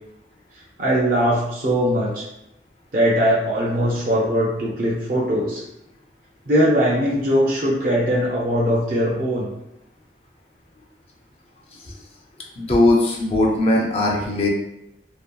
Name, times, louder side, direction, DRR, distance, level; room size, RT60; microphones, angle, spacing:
voice 1, 0.8-2.2 2.9-5.6 6.5-9.5, equal, 50° right, -5 dB, 0.5 m, -20 dB
voice 2, 12.6-14.5, left 2 dB, 35° left, -1 dB, 0.4 m, -19 dB
2.7 x 2.2 x 2.3 m, 0.84 s
head